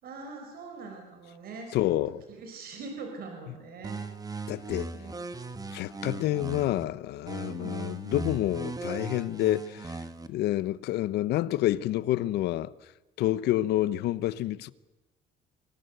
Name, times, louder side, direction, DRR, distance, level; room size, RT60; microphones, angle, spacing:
voice 1, 0.0-1.8 2.3-4.0 4.3-4.6 4.9-5.3 7.4-7.9, right 3 dB, 65° right, 4.8 m, -43 dB
voice 2, 1.7-2.2 4.5-4.9 5.7-10.0 10.3-12.7 13.2-14.7, left 14 dB, 80° left, 0.9 m, -28 dB
sound 1, 3.8-6.8 7.3-10.3, right 3 dB, 20° right, 1.6 m, -38 dB
26.0 x 18.5 x 7.9 m
cardioid pair, 110°, 17 cm